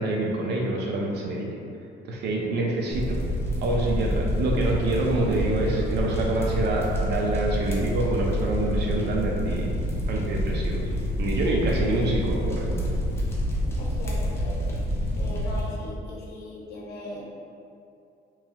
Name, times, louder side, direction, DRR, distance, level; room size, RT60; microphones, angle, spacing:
voice 1, 0.0-1.5 2.1-3.2 3.6-9.7 10.1-10.8 11.2-12.9, right 2 dB, 65° right, -1 dB, 0.5 m, -26 dB
sound 1, 2.9-15.6, equal, 15° left, 0.5 m, -27 dB
voice 2, 13.8-14.7 15.2-17.2, left 1 dB, 65° left, -3 dB, 0.7 m, -39 dB
3.0 x 2.7 x 2.4 m, 2.5 s
cardioid pair, 135°, 18 cm